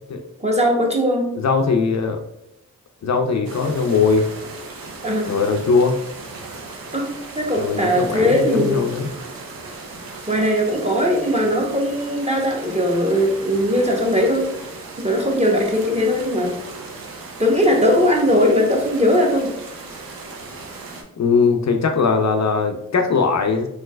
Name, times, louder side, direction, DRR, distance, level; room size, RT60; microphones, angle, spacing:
voice 1, 0.4-1.4 5.0-5.3 6.9-8.8 10.3-14.5 15.0-16.6 17.4-19.6, equal, 20° right, 0 dB, 0.8 m, -19 dB
voice 2, 1.4-2.2 3.0-4.3 5.3-6.0 7.6-9.1 21.2-23.7, left 4 dB, 55° left, 4 dB, 0.4 m, -20 dB
sound 1, 3.4-21.0, right 3 dB, 90° right, 0.6 m, -37 dB
3.1 x 3.1 x 2.2 m, 0.83 s
cardioid pair, 45°, 34 cm